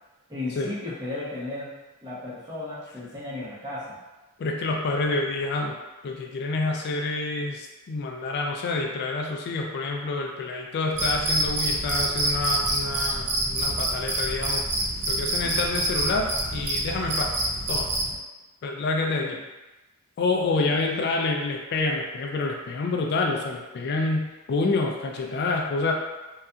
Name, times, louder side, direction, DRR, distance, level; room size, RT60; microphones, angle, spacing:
voice 1, 0.3-1.7 2.0-4.0 15.4-15.6 18.1-18.2 19.1-19.4, left 2 dB, 20° right, -8 dB, 0.7 m, -35 dB
voice 2, 4.4-5.8 6.0-14.6 15.1-17.3 17.7-17.9 18.6-19.4 20.2-25.9, left 3 dB, 50° left, 1 dB, 0.3 m, -27 dB
Cricket, 11.0-18.1, right 1 dB, 50° right, 0.4 m, -27 dB
2.7 x 2.3 x 2.3 m, 1.1 s
head